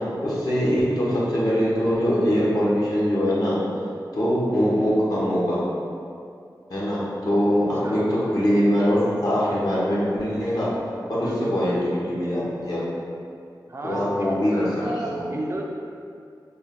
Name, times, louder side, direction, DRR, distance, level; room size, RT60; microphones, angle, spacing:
voice 1, 0.2-3.6 4.1-5.6 6.7-8.0 8.3-10.7 11.1-12.9 13.8-15.2, equal, 55° left, -8 dB, 1.0 m, -22 dB
voice 2, 7.8-8.2 11.2-11.6 13.7-15.6, right 1 dB, 35° right, -1 dB, 0.4 m, -33 dB
3.6 x 2.2 x 3.6 m, 2.4 s
wide cardioid pair, 90°, 8 cm